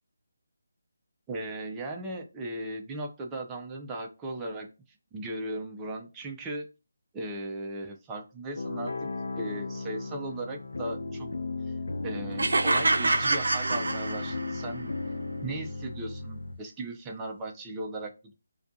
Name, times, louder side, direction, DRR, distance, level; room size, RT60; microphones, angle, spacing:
voice 1, 1.3-4.7 5.1-6.7 7.1-9.1 9.3-11.3 12.0-14.9 15.4-18.3, right 2 dB, 10° right, 1 dB, 0.4 m, -37 dB
sound 1, 8.6-16.6, left 3 dB, 75° left, 0.4 m, -36 dB
sound 2, 12.4-14.7, right 2 dB, 75° right, 0.4 m, -26 dB
2.4 x 2.2 x 2.5 m, 0.30 s
figure-of-eight pair, 165°, 0 cm